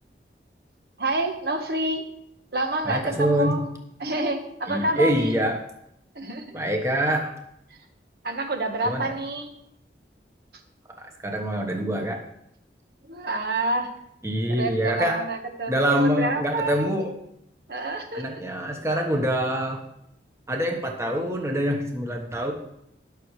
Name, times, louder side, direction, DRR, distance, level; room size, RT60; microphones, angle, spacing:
voice 1, 1.0-2.1 2.5-3.6 4.0-5.3 6.1-6.6 7.7-7.8 8.2-9.5 13.0-13.9 14.6-17.1 17.7-18.4, right 2 dB, 60° right, 5 dB, 1.3 m, -28 dB
voice 2, 2.9-3.6 4.7-5.6 6.5-7.3 8.8-9.1 11.0-12.2 14.2-15.2 15.7-17.1 18.1-19.8 20.5-22.5, equal, 15° right, 2 dB, 1.2 m, -25 dB
19.0 x 6.5 x 3.2 m, 0.76 s
head